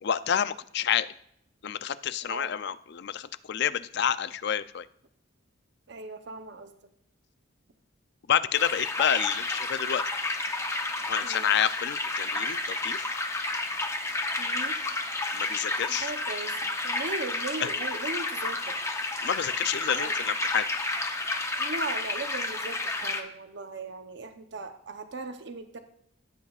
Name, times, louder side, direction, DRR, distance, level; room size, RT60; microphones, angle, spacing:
voice 1, 0.0-1.1 1.6-4.9 8.3-10.0 11.1-13.1 15.3-16.1 19.2-20.6, left 9 dB, 55° left, 14 dB, 0.4 m, -29 dB
voice 2, 5.9-6.8 11.2-11.5 14.4-14.8 15.9-18.8 19.9-20.3 21.6-25.8, right 3 dB, 60° right, 7 dB, 0.8 m, -38 dB
sound 1, 8.5-23.2, left 2 dB, 15° left, 0.7 m, -31 dB
15.0 x 8.2 x 2.4 m, 0.72 s
head